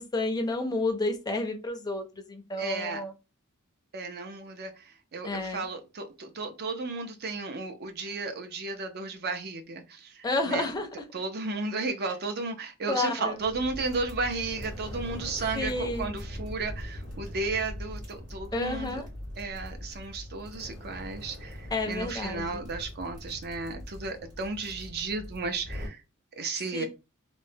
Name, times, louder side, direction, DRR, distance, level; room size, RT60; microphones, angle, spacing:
voice 1, 0.0-3.1 5.2-5.7 10.2-10.9 12.9-13.4 15.5-16.1 18.5-19.1 21.7-22.6 26.7-26.9, left 2 dB, 20° left, 0.5 m, -30 dB
voice 2, 2.6-3.0 3.9-10.7 11.1-19.0 19.4-26.0 26.4-26.9, right 3 dB, 45° right, 0.5 m, -34 dB
sound 1, 13.4-25.9, equal, 75° right, 1.6 m, -41 dB
3.0 x 2.1 x 2.6 m
head